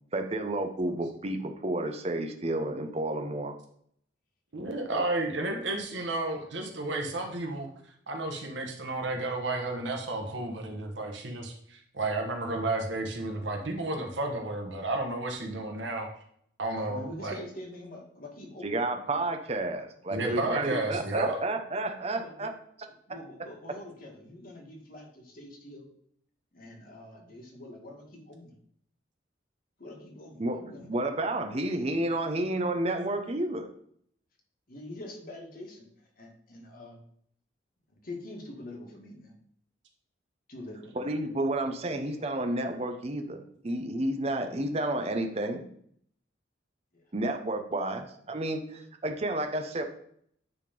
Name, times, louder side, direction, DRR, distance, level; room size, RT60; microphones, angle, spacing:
voice 1, 0.1-3.6 18.6-22.5 30.4-30.6 30.9-33.7 41.0-45.6 47.1-49.8, right 1 dB, 35° right, 5 dB, 0.8 m, -31 dB
voice 2, 4.5-7.7 8.1-16.1 16.6-17.3 20.1-21.4, right 2 dB, 75° right, 2 dB, 1.3 m, -32 dB
voice 3, 16.8-18.8 19.1-19.2 20.2-20.7 22.2-22.5 23.1-25.9 26.5-28.5 29.8-30.9 34.7-37.0 37.9-39.3 40.5-41.1 46.9-47.1, left 1 dB, 50° left, 0 dB, 1.9 m, -45 dB
9.5 x 3.6 x 5.2 m, 0.66 s
head